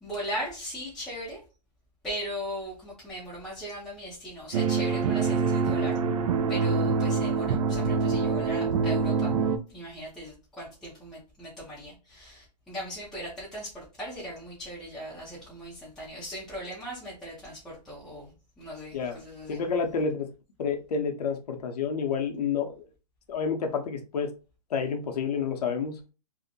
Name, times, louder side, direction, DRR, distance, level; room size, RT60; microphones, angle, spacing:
voice 1, 0.0-1.4 2.0-6.0 6.5-9.3 9.7-18.2 18.6-19.0 19.2-19.6, equal, ahead, 0.5 m, -38 dB
sound 1, 4.5-9.6, right 5 dB, 60° right, 0.4 m, -25 dB
voice 2, 19.5-20.3 20.6-22.7 23.3-24.3 24.7-26.0, left 6 dB, 65° left, 0.7 m, -29 dB
2.6 x 2.1 x 2.7 m
hypercardioid pair, 150°, 21 cm